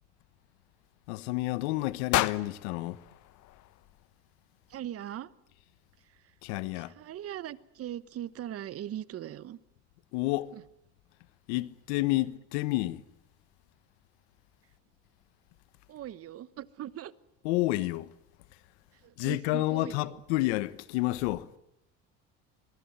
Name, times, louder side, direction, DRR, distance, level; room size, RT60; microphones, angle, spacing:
voice 1, 1.1-3.0 6.4-6.9 10.1-10.5 11.5-13.0 17.4-18.1 19.2-21.5, left 18 dB, 90° left, 1.2 m, -30 dB
sound 1, 2.1-4.3, left 16 dB, 60° left, 1.1 m, -33 dB
voice 2, 4.7-5.3 6.0-6.3 6.7-9.6 10.5-10.6 15.9-17.1 18.9-20.2, right 11 dB, 45° right, 1.1 m, -40 dB
23.5 x 23.5 x 8.1 m
supercardioid pair, 110°, 32 cm